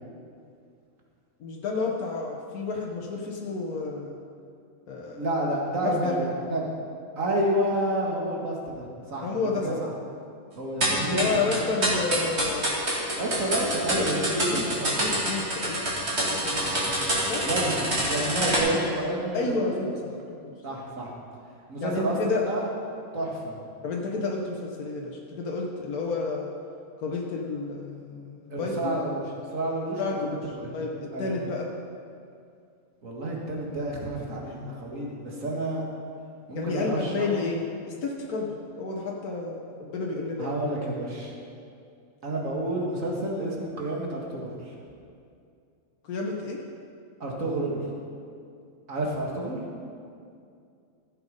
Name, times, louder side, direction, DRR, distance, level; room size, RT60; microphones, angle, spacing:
voice 1, 1.4-4.2 4.9-5.2 5.8-6.2 9.2-9.8 11.1-12.9 14.0-14.1 14.5-14.6 15.0-16.5 17.3-17.5 19.3-19.9 20.4-20.5 21.8-22.4 23.8-26.5 27.0-28.9 30.0-30.4 30.7-31.7 36.5-38.5 38.8-40.6 46.0-46.6, left 4 dB, 85° left, -1 dB, 1.5 m, -30 dB
voice 2, 5.1-6.7 7.2-9.9 10.6-11.6 12.1-12.2 13.2-15.1 16.4-16.9 17.4-20.0 20.6-21.1 21.7-22.2 22.5-22.7 23.1-23.6 28.5-29.2 29.5-30.7 31.1-31.3 33.0-35.9 36.5-37.3 40.4-41.3 42.2-44.7 47.2-47.8 48.9-49.6, right 1 dB, 65° right, -2 dB, 2.3 m, -30 dB
sound 1, 10.8-18.6, right 1 dB, 45° right, 2.8 m, -26 dB
14.5 x 7.7 x 5.3 m, 2.4 s
omnidirectional pair, 1.5 m